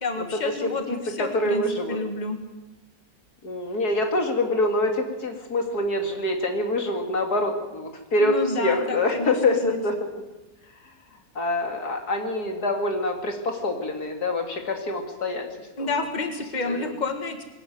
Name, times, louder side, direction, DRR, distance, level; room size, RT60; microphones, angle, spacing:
voice 1, 0.0-1.6 1.9-2.4 8.2-9.3 9.6-9.8 15.8-17.4, left 2 dB, 30° left, 6 dB, 2.0 m, -29 dB
voice 2, 0.6-2.0 3.4-10.0 11.3-15.5 15.8-15.9 16.6-16.9, left 2 dB, 90° left, 4 dB, 3.2 m, -25 dB
22.0 x 13.0 x 9.5 m, 1.1 s
omnidirectional pair, 1.6 m